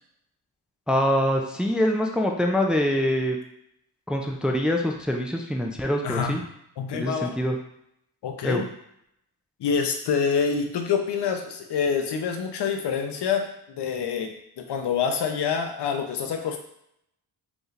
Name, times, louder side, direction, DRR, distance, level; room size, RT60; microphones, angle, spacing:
voice 1, 0.9-3.4 4.1-6.4 6.9-7.6 8.4-8.6, equal, ahead, 1 dB, 0.4 m, -24 dB
voice 2, 6.0-6.4 6.8-7.3 8.2-8.7 9.6-16.6, left 6 dB, 75° left, 5 dB, 0.7 m, -26 dB
5.1 x 3.2 x 2.5 m, 0.76 s
wide cardioid pair, 125°, 41 cm